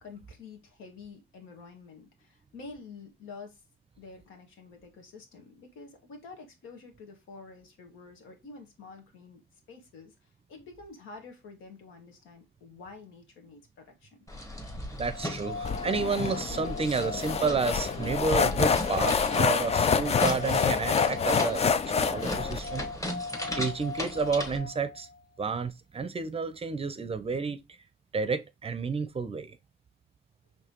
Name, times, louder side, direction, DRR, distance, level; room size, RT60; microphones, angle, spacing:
voice 1, 0.0-3.6 4.0-9.4 9.7-10.1 10.5-14.1, left 4 dB, 85° left, 1.4 m, -48 dB
sound 1, 14.3-24.6, left 1 dB, 15° left, 1.1 m, -38 dB
voice 2, 14.9-22.8 23.6-25.1 25.4-27.6 28.1-29.6, right 4 dB, 30° right, 0.5 m, -31 dB
sound 2, 15.1-25.2, left 4 dB, 60° left, 1.8 m, -40 dB
sound 3, 15.6-22.6, left 6 dB, 30° left, 0.4 m, -27 dB
4.9 x 3.2 x 2.9 m
cardioid pair, 90°, 20 cm